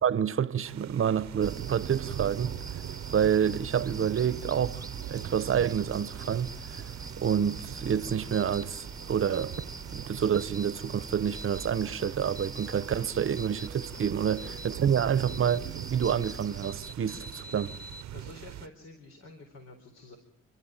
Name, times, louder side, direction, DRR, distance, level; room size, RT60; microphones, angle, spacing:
voice 1, 0.0-2.5 3.1-6.5 7.2-9.5 9.9-17.8, right 8 dB, 45° right, 1.0 m, -28 dB
sound 1, 0.6-18.7, right 12 dB, 65° right, 0.9 m, -42 dB
sound 2, 1.4-17.0, right 3 dB, 10° right, 0.8 m, -44 dB
sound 3, 8.3-8.6 9.3-9.6 10.3-10.7 11.3-11.7 12.4-12.7 13.4-13.7 14.4-14.7 15.3-15.6 16.0-16.3 16.6-18.0, equal, 40° left, 2.3 m, -45 dB
voice 2, 18.1-20.2, left 2 dB, 60° left, 4.0 m, -49 dB
30.0 x 12.5 x 9.1 m
cardioid pair, 90°, 30 cm